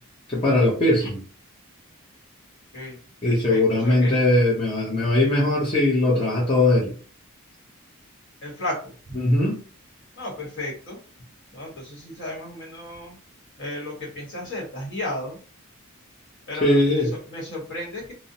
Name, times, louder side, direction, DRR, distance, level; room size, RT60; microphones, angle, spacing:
voice 1, 0.3-1.2 3.2-6.9 9.1-9.6 16.6-17.1, left 1 dB, 25° left, 0.5 m, -20 dB
voice 2, 3.2-4.1 8.4-8.9 10.2-11.0 11.5-13.1 13.6-15.4 16.5-18.1, left 1 dB, 55° left, 1.2 m, -34 dB
2.5 x 2.0 x 2.7 m
head